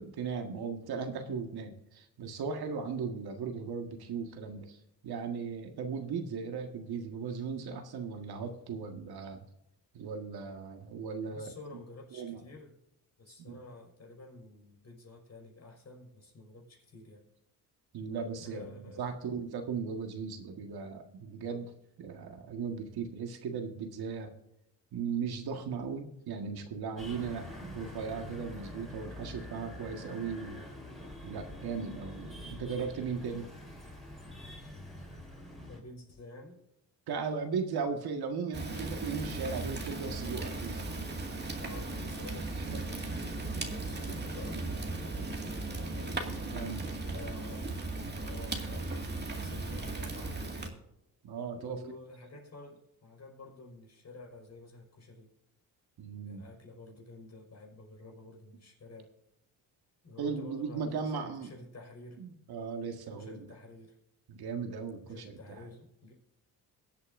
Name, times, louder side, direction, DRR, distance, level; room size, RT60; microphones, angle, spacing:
voice 1, 0.0-9.4 9.9-11.5 12.1-12.4 13.3-13.6 17.9-21.7 22.0-24.3 24.9-30.6 31.2-33.5 37.1-40.8 42.7-42.8 46.2-46.9 51.2-51.8 56.0-56.4 60.2-61.5 62.2-63.5 64.3-65.6, right 5 dB, 70° right, 5 dB, 1.8 m, -37 dB
voice 2, 11.3-12.8 13.2-17.3 18.4-19.3 35.7-36.6 41.2-46.3 47.0-47.7 48.2-50.7 51.6-55.3 56.3-59.1 60.0-62.2 63.1-64.0 65.0-66.2, left 2 dB, 40° left, 0 dB, 5.3 m, -50 dB
sound 1, 27.0-35.8, left 1 dB, ahead, 4.1 m, -46 dB
Fire, 38.5-50.7, right 2 dB, 25° right, 2.2 m, -37 dB
22.5 x 8.3 x 2.6 m, 0.84 s
cardioid pair, 90°, 39 cm